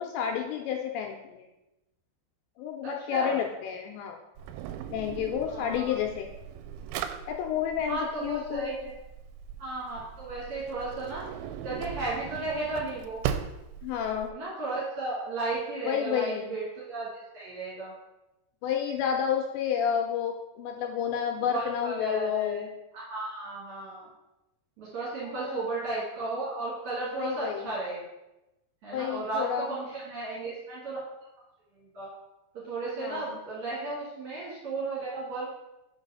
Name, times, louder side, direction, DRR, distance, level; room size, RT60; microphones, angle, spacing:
voice 1, 0.0-1.5 2.6-4.2 4.9-6.3 7.3-8.7 13.8-14.3 15.9-16.6 18.6-22.7 25.2-25.7 27.2-27.7 28.9-29.7 33.0-33.4, left 8 dB, 80° left, 2 dB, 2.7 m, -30 dB
voice 2, 2.8-3.4 5.5-6.0 7.9-8.9 9.6-11.3 11.6-13.2 14.3-17.9 21.4-22.6 22.9-24.1 24.8-28.0 28.8-31.0 31.7-32.1 32.5-35.6, right 2 dB, 50° right, -7 dB, 2.5 m, -34 dB
Drawer open or close, 4.4-14.3, right 9 dB, 90° right, 3.0 m, -39 dB
5.7 x 5.2 x 5.4 m, 0.95 s
omnidirectional pair, 5.4 m